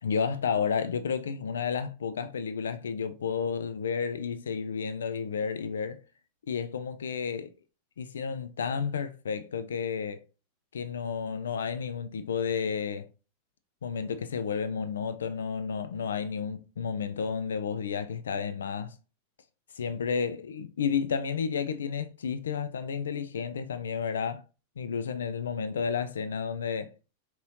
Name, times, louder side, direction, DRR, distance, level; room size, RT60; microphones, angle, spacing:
voice 1, 0.0-6.0 6.5-7.5 8.0-10.2 10.7-13.1 13.8-19.0 19.7-24.4 24.8-26.9, left 6 dB, 65° left, 0.4 m, -31 dB
5.3 x 2.9 x 2.7 m
figure-of-eight pair, 90°, 0 cm